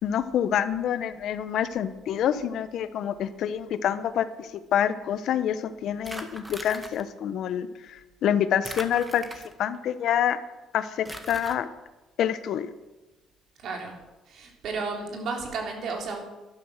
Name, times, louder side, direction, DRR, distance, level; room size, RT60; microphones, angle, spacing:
voice 1, 0.0-9.2 9.6-10.4 10.7-11.7 12.2-12.7, left 9 dB, 70° left, 13 dB, 0.9 m, -27 dB
sound 1, 6.0-7.0 8.6-9.8 11.0-11.6, right 1 dB, 10° right, 1.8 m, -39 dB
voice 2, 13.6-14.0 14.3-16.2, right 4 dB, 65° right, 1 dB, 3.6 m, -33 dB
12.0 x 12.0 x 6.5 m, 1.1 s
cardioid pair, 90°, 0 cm